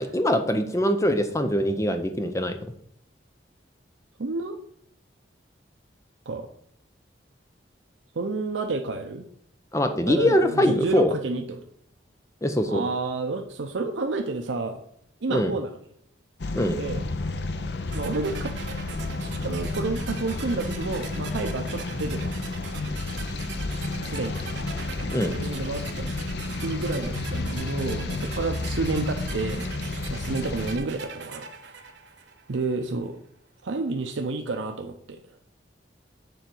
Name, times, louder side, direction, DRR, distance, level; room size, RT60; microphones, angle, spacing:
voice 1, 0.0-2.6 9.7-11.1 12.4-12.8 15.3-15.5 16.5-16.8 25.1-25.3, equal, 15° left, 6 dB, 0.7 m, -23 dB
voice 2, 4.2-4.6 6.3-6.5 8.1-9.2 10.1-11.6 12.7-14.8 15.2-15.8 16.7-17.0 17.9-18.5 19.4-22.3 24.0-24.4 25.0-26.1 26.6-29.7 30.1-31.5 32.5-33.2 33.6-35.2, right 3 dB, 85° right, 5 dB, 0.6 m, -30 dB
sound 1, 16.4-30.8, left 2 dB, 60° left, 0.6 m, -31 dB
sound 2, 17.9-32.8, right 6 dB, 70° right, 0.9 m, -42 dB
7.0 x 3.9 x 6.0 m, 0.68 s
head